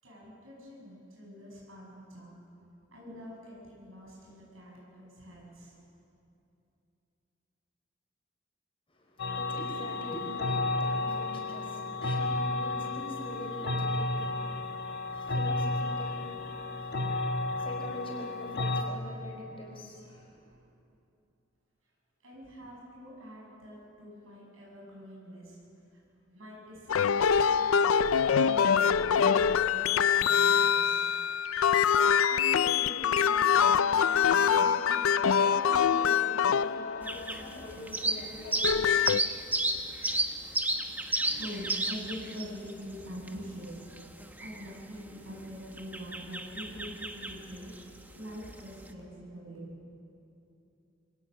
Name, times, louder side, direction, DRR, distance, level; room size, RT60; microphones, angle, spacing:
voice 1, 0.0-2.4 2.9-5.8 22.2-25.6 25.9-26.0 26.3-31.1 41.2-43.9 44.4-47.7 48.2-49.7, equal, 80° right, -4 dB, 6.9 m, -45 dB
voice 2, 8.9-20.6 31.8-40.0, left 1 dB, 25° left, 0 dB, 4.3 m, -45 dB
sound 1, 9.2-18.8, left 2 dB, 55° left, 1.4 m, -32 dB
sound 2, 26.9-37.4 38.4-39.2, left 7 dB, 85° left, 0.5 m, -24 dB
sound 3, 37.0-48.9, right 2 dB, 10° right, 1.2 m, -33 dB
25.5 x 18.5 x 6.3 m, 2.8 s
head